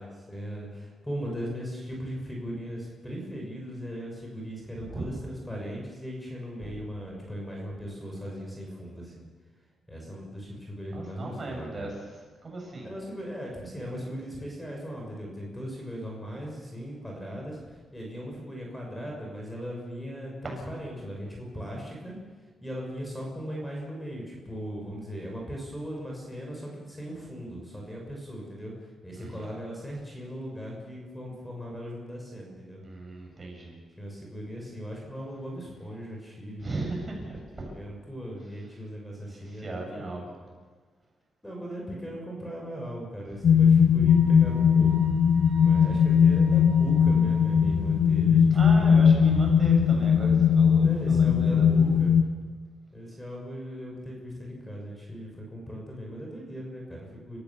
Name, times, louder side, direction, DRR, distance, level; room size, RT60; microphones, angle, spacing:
voice 1, 0.0-9.3 9.9-11.9 12.8-17.6 17.9-22.2 22.6-32.8 34.0-36.7 37.7-40.2 41.4-44.9 45.6-49.4 50.8-52.2 52.9-57.4, equal, 5° left, -1 dB, 6.1 m, -38 dB
voice 2, 10.9-12.0 12.4-12.9 29.2-29.5 32.8-33.8 36.6-37.7 39.2-40.3 43.3-43.7 48.5-51.9, right 2 dB, 30° right, 0 dB, 7.9 m, -37 dB
sound 1, 43.4-52.2, left 7 dB, 70° left, 1.4 m, -20 dB
Wind instrument woodwind instrument, 44.1-47.9, right 4 dB, 55° right, 5.6 m, -47 dB
30.0 x 15.5 x 7.2 m, 1.5 s
cardioid pair, 110°, 0 cm